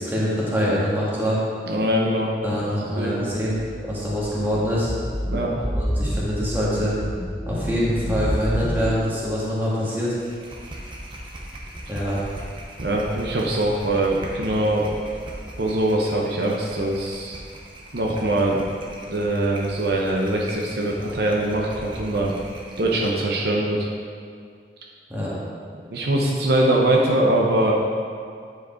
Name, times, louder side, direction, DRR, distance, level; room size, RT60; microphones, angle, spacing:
voice 1, 0.0-1.4 2.4-4.9 5.7-6.9 7.4-10.1 11.9-12.2 25.1-25.3, equal, 10° right, -8 dB, 1.7 m, -24 dB
voice 2, 1.7-2.3 3.0-3.2 5.3-5.7 12.8-14.9 15.6-17.4 17.9-18.6 19.1-22.3 22.8-23.9 25.9-27.7, right 1 dB, 70° right, -2 dB, 0.9 m, -22 dB
sound 1, 3.4-8.9, equal, 10° left, 0.5 m, -28 dB
sound 2, 9.9-23.2, right 1 dB, 30° right, 0.9 m, -40 dB
9.5 x 4.9 x 4.4 m, 2.2 s
head